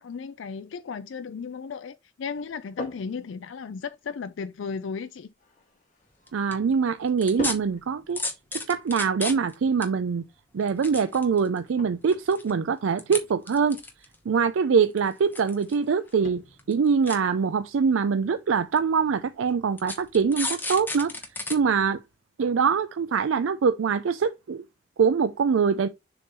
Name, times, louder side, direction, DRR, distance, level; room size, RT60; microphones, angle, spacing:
voice 1, 0.0-5.3, left 5 dB, 80° left, 0.4 m, -35 dB
sound 1, 2.3-20.4, left 1 dB, 40° left, 1.8 m, -46 dB
sound 2, 6.3-6.5 7.2-7.5 8.2-9.5 9.8-9.9 10.6-11.6 12.0-12.5 13.0-13.2 13.5-14.2 15.0-15.8 16.1-16.2 16.6-16.7 17.1-17.2 18.0-18.1 18.8-18.9 19.8-21.6 22.0-22.1, left 3 dB, 10° left, 1.0 m, -32 dB
voice 2, 6.3-8.2 8.7-10.2 10.5-13.8 14.3-16.4 16.7-21.1 21.5-22.0 22.4-24.6 25.0-25.9, right 6 dB, 90° right, 0.4 m, -23 dB
6.8 x 3.7 x 4.2 m
head